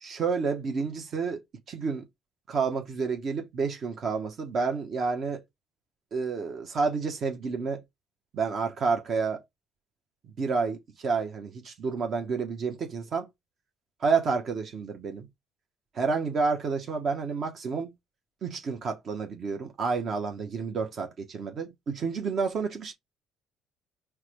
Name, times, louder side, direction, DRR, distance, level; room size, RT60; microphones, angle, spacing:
voice 1, 0.0-1.4 1.7-2.0 2.5-5.4 6.1-7.8 8.3-9.4 10.4-13.3 14.0-15.3 15.9-17.9 18.4-22.9, right 5 dB, 55° right, 0.9 m, -29 dB
4.6 x 2.3 x 4.5 m
supercardioid pair, 80°, 0 cm